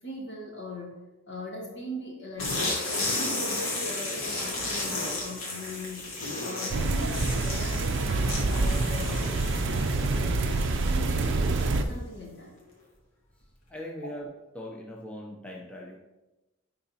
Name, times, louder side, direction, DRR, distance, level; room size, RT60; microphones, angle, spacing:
voice 1, 0.0-1.0 1.3-6.1 6.4-9.4 9.7-11.5 11.7-12.5, left 1 dB, 60° left, -1 dB, 1.6 m, -40 dB
sound 1, 2.4-11.9, left 2 dB, 80° left, 1.8 m, -33 dB
sound 2, 6.7-11.8, right 3 dB, 60° right, 0.5 m, -26 dB
voice 2, 13.7-16.0, left 1 dB, 5° left, -3 dB, 0.6 m, -40 dB
10.0 x 3.9 x 2.8 m, 1.0 s
head